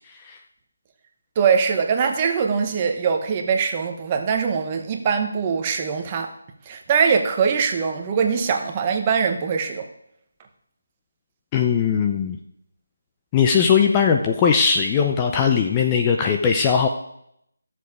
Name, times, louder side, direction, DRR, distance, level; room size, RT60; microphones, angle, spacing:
voice 1, 1.4-6.3 6.7-9.9, right 6 dB, 20° right, 4 dB, 1.0 m, -22 dB
voice 2, 11.5-12.4 13.3-16.9, left 6 dB, 15° left, 3 dB, 0.6 m, -19 dB
14.0 x 7.0 x 4.9 m, 0.75 s
figure-of-eight pair, 165°, 0 cm